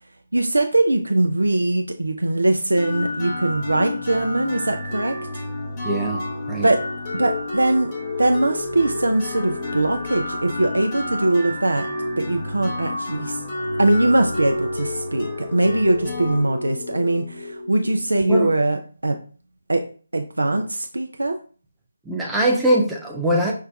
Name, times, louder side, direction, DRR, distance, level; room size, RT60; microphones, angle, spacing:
voice 1, 0.3-5.2 6.6-6.8 7.1-7.9 8.2-11.9 12.2-13.4 13.8-19.2 19.7-19.8 20.1-21.4, right 2 dB, 80° right, 5 dB, 0.3 m, -21 dB
sound 1, 2.8-18.4, left 2 dB, 25° left, 0.9 m, -30 dB
voice 2, 5.8-6.7 18.3-18.5 22.1-23.5, right 1 dB, 5° right, -2 dB, 0.5 m, -22 dB
5.4 x 2.2 x 2.4 m, 0.39 s
figure-of-eight pair, 150°, 0 cm